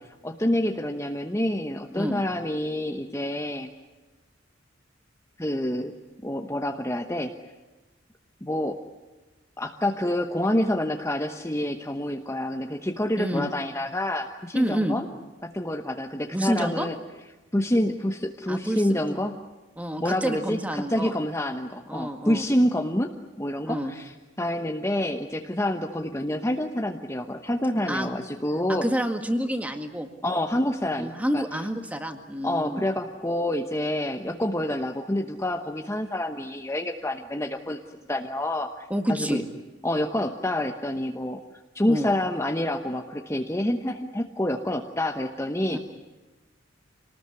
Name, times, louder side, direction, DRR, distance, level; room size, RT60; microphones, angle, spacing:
voice 1, 0.2-3.7 5.4-5.9 6.2-7.3 8.4-8.8 9.6-15.1 15.4-16.9 17.5-19.3 20.0-23.1 23.4-24.1 24.4-28.8 30.2-31.4 32.4-37.8 38.1-39.4 39.8-41.4 41.7-45.8, left 1 dB, 15° left, 4 dB, 1.0 m, -27 dB
voice 2, 13.2-13.5 14.5-15.0 16.3-16.9 18.5-19.2 19.8-21.1 21.9-22.5 23.6-23.9 27.9-28.1 28.7-30.1 31.0-32.9 38.9-39.4 41.9-42.1 45.7-45.8, equal, 10° right, 5 dB, 1.9 m, -28 dB
27.0 x 19.5 x 9.8 m, 1.2 s
head